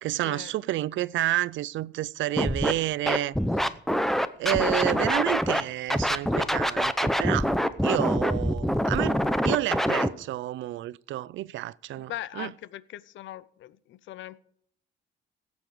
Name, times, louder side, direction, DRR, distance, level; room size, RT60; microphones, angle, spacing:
voice 1, 0.0-3.3 4.4-7.5 7.8-12.5, right 15 dB, 75° right, 0.4 m, -30 dB
Scratching (performance technique), 2.4-2.7 3.1-5.6 5.9-10.1, equal, ahead, 0.7 m, -25 dB
voice 2, 12.0-14.4, left 13 dB, 75° left, 0.6 m, -40 dB
16.5 x 7.1 x 5.0 m
cardioid pair, 90°, 20 cm